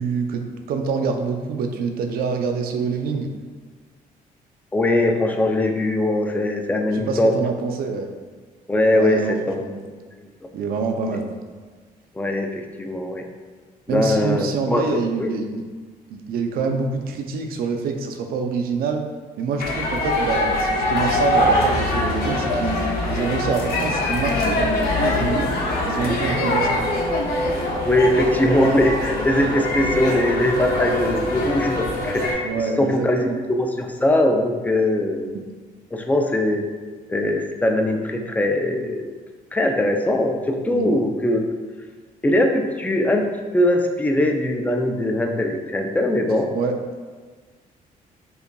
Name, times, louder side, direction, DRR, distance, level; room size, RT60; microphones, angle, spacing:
voice 1, 0.0-3.3 6.9-8.1 8.9-9.3 9.6-9.9 10.5-11.3 13.9-15.6 16.1-19.1 19.4-22.8 23.1-25.5 25.8-26.8 32.4-33.4 35.3-35.4 40.7-40.9 46.5-46.7, right 5 dB, 75° right, 5 dB, 0.5 m, -26 dB
voice 2, 4.7-7.3 8.7-9.6 12.2-13.2 13.9-15.3 27.8-35.2 35.9-36.7 37.1-39.1 39.5-41.6 42.2-43.3 43.5-46.5, left 1 dB, 10° left, 3 dB, 0.4 m, -21 dB
sound 1, 19.6-32.3, left 1 dB, 75° left, 0.7 m, -23 dB
5.5 x 2.5 x 2.2 m, 1.4 s
cardioid pair, 100°, 16 cm